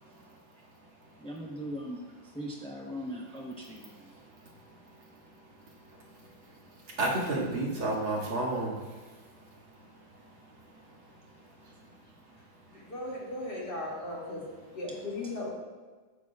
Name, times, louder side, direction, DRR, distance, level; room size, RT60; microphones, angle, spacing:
voice 1, 1.2-4.1, equal, 5° left, -2 dB, 0.5 m, -40 dB
voice 2, 6.9-8.9, right 2 dB, 80° right, -5 dB, 3.0 m, -30 dB
voice 3, 12.9-14.4 14.7-15.5, left 2 dB, 55° left, -5 dB, 3.0 m, -36 dB
14.5 x 11.0 x 2.4 m, 1.4 s
omnidirectional pair, 2.2 m